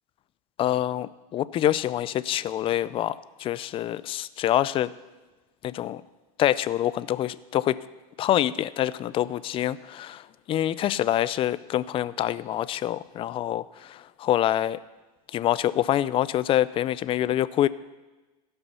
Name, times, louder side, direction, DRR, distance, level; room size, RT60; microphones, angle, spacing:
voice 1, 0.6-4.9 5.6-6.0 6.4-7.8 8.2-14.8 15.3-17.7, left 12 dB, 30° left, 17 dB, 0.4 m, -26 dB
16.0 x 5.6 x 5.6 m, 1.2 s
supercardioid pair, 125°, 19 cm